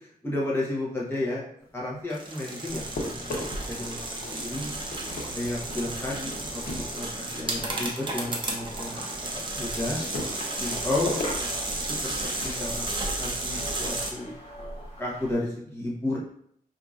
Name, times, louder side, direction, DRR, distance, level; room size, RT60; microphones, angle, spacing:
voice 1, 0.2-1.4 1.7-4.7 5.3-10.0 10.6-11.6 12.4-12.9 13.2-14.3 15.0-16.2, left 2 dB, 15° left, -5 dB, 1.0 m, -32 dB
sound 1, 1.9-3.8 4.1-8.5 8.9-15.5, left 2 dB, 85° left, 0.9 m, -39 dB
sound 2, 2.1-14.1, right 2 dB, 30° right, 0.6 m, -33 dB
sound 3, 2.7-15.3, equal, 40° left, 0.8 m, -43 dB
4.6 x 2.6 x 2.4 m, 0.66 s
wide cardioid pair, 165°, 15 cm